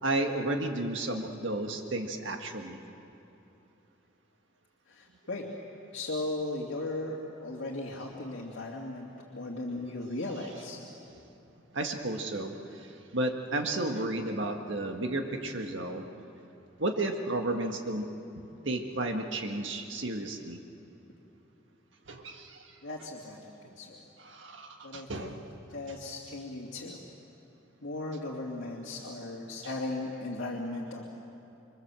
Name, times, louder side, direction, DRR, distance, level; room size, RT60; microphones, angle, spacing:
voice 1, 0.0-2.8 11.7-16.1 16.8-18.1 18.4-20.6 22.1-22.7 24.2-25.5, right 2 dB, 65° right, 4 dB, 1.7 m, -33 dB
voice 2, 4.9-5.4 5.9-10.8 22.8-24.0 24.8-25.4 25.7-27.0 27.8-31.0, left 2 dB, 65° left, -4 dB, 2.5 m, -37 dB
27.5 x 24.5 x 7.6 m, 3.0 s
head